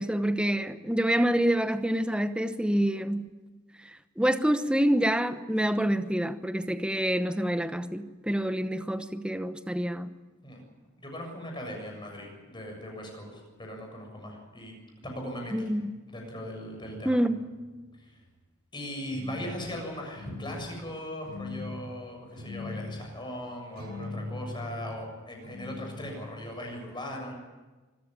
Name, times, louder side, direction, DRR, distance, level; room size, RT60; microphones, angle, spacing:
voice 1, 0.0-3.3 4.2-10.1 15.5-15.9 17.0-17.4, right 1 dB, 5° right, 1.0 m, -27 dB
voice 2, 11.0-14.7 15.0-15.7 16.1-17.2 18.0-18.2 18.7-27.3, equal, 25° left, 7.1 m, -39 dB
sound 1, 16.7-18.3 19.1-19.6 20.1-20.6 21.2-21.8 22.3-23.1 23.7-25.0 25.4-26.6, left 2 dB, 55° right, 5.8 m, -40 dB
25.0 x 14.5 x 9.8 m
head